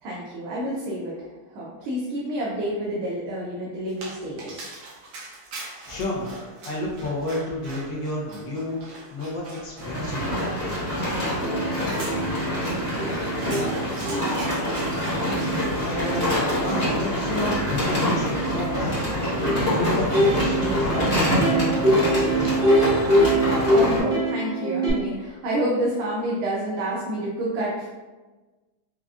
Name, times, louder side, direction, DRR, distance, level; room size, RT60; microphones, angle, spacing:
voice 1, 0.0-4.7 14.0-14.4 23.7-27.9, right 1 dB, 85° right, -5 dB, 1.6 m, -29 dB
Dog, 3.9-23.0, right 2 dB, 65° right, 1.1 m, -44 dB
voice 2, 5.8-10.3 15.9-19.0 19.7-22.6, left 2 dB, 70° left, -4 dB, 1.3 m, -31 dB
sound 1, 9.8-24.0, equal, 30° left, 0.8 m, -26 dB
Plucked string instrument, 11.0-11.1 11.4-24.9, right 1 dB, 5° right, 0.3 m, -25 dB
4.9 x 2.4 x 2.3 m, 1.2 s
omnidirectional pair, 2.3 m